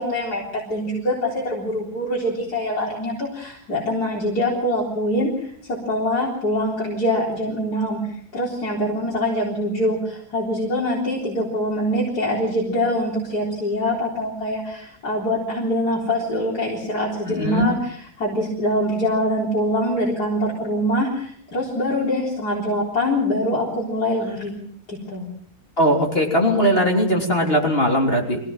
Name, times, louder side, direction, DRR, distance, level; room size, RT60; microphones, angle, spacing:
voice 1, 0.0-24.6 24.9-25.2, equal, 85° left, -3 dB, 4.6 m, -24 dB
voice 2, 17.3-17.7 25.8-28.4, equal, 35° left, 1 dB, 3.7 m, -19 dB
24.5 x 17.0 x 7.3 m, 0.63 s
omnidirectional pair, 1.6 m